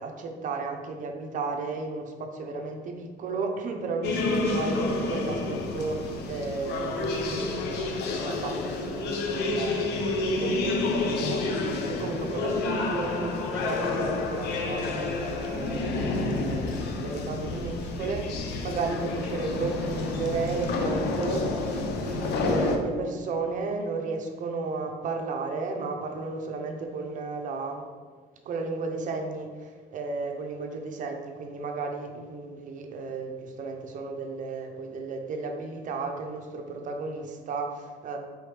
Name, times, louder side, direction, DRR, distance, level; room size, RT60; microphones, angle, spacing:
voice 1, 0.0-27.8 28.4-38.2, right 3 dB, 50° right, 3 dB, 0.6 m, -34 dB
sound 1, 4.0-22.8, left 3 dB, 75° left, 0.6 m, -29 dB
4.7 x 3.1 x 3.3 m, 1.5 s
cardioid pair, 110°, 17 cm